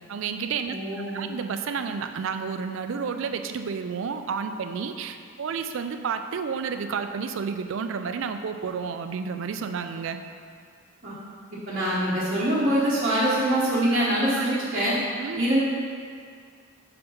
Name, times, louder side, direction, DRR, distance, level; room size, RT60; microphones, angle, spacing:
voice 1, 0.1-0.8 1.1-10.2 14.4-14.6 15.2-15.6, right 6 dB, 65° right, 8 dB, 0.3 m, -31 dB
voice 2, 0.7-1.3 11.0-11.1 11.7-15.0 15.4-15.6, right 1 dB, 45° right, -9 dB, 0.9 m, -24 dB
5.7 x 3.6 x 5.3 m, 2.2 s
head